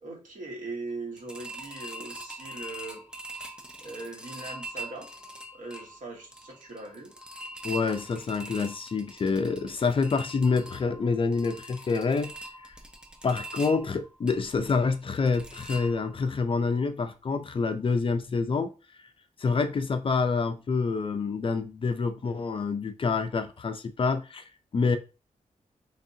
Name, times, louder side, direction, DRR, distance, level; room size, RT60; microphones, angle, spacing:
voice 1, 0.0-3.0 3.8-5.1 5.5-7.1, right 3 dB, 85° right, 1.3 m, -40 dB
sound 1, 1.2-16.3 16.7-16.8 17.2-17.3, right 1 dB, 5° right, 0.5 m, -43 dB
voice 2, 7.6-12.3 12.6-12.7 13.2-18.7 19.4-25.0, left 4 dB, 45° left, 0.4 m, -27 dB
4.0 x 3.4 x 2.7 m
wide cardioid pair, 160°, 13 cm